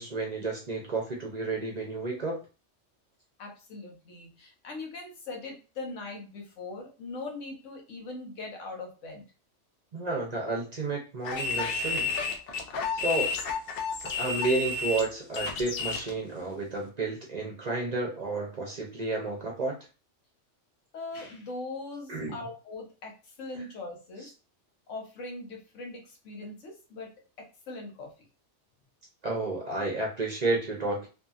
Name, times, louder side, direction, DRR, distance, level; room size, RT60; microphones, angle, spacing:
voice 1, 0.0-2.4 9.9-12.1 12.9-13.4 14.0-19.8 22.1-22.4 29.2-31.1, right 3 dB, 45° right, 0 dB, 0.6 m, -31 dB
voice 2, 3.4-9.2 20.9-24.3 24.9-27.1 27.4-28.1, left 3 dB, 85° left, 1 dB, 1.2 m, -41 dB
sound 1, 11.2-16.1, left 4 dB, 60° left, 0.7 m, -31 dB
2.7 x 2.6 x 2.3 m, 0.33 s
omnidirectional pair, 1.2 m